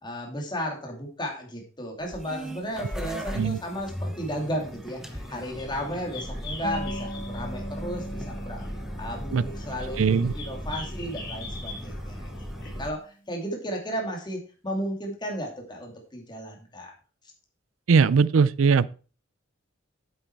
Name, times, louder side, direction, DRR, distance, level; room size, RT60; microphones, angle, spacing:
voice 1, 0.0-8.6 9.0-12.3 12.8-16.9, equal, 25° left, 2.7 m, -34 dB
sound 1, 2.0-12.9, equal, ahead, 0.9 m, -37 dB
sound 2, 4.9-12.9, left 3 dB, 60° left, 3.0 m, -44 dB
sound 3, 6.6-12.8, equal, 45° left, 1.3 m, -40 dB
voice 2, 10.0-10.3 17.9-18.9, right 5 dB, 85° right, 0.5 m, -20 dB
8.0 x 8.0 x 4.5 m
head